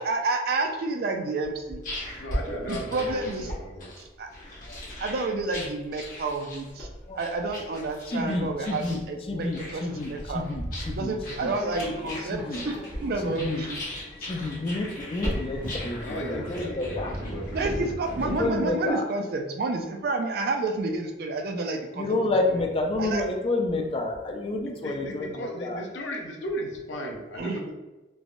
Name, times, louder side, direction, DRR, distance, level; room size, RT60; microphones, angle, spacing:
voice 1, 0.0-1.8 2.7-3.5 4.2-4.3 5.0-6.9 7.2-10.4 10.9-13.8 17.5-22.6 23.0-23.2 27.4-27.6, right 3 dB, 55° right, 4 dB, 0.3 m, -30 dB
sound 1, 1.4-17.5, equal, 50° left, 1.1 m, -38 dB
voice 2, 2.2-3.9 16.0-18.0 24.6-27.7, equal, 85° left, 1 dB, 0.6 m, -36 dB
voice 3, 8.1-9.0 9.3-11.1 11.4-11.5 12.3-12.6 13.2-13.6 14.2-17.2 18.2-19.0 22.0-25.8, left 2 dB, 30° left, 2 dB, 0.4 m, -29 dB
Subway metro underground, 11.4-18.9, equal, 10° right, 0.9 m, -39 dB
3.3 x 2.1 x 2.4 m, 1.1 s
head